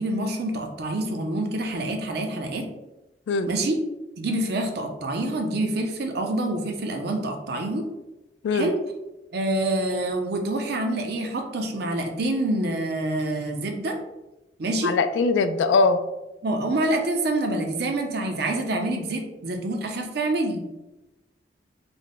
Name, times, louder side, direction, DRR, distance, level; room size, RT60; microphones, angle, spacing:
voice 1, 0.0-2.7 3.5-3.8 4.2-7.9 8.5-8.8 9.3-14.0 14.6-14.9 16.4-20.6, right 1 dB, 60° right, 3 dB, 0.6 m, -26 dB
voice 2, 14.8-16.0, left 4 dB, 80° left, 10 dB, 0.3 m, -21 dB
3.3 x 2.1 x 4.0 m, 0.99 s
head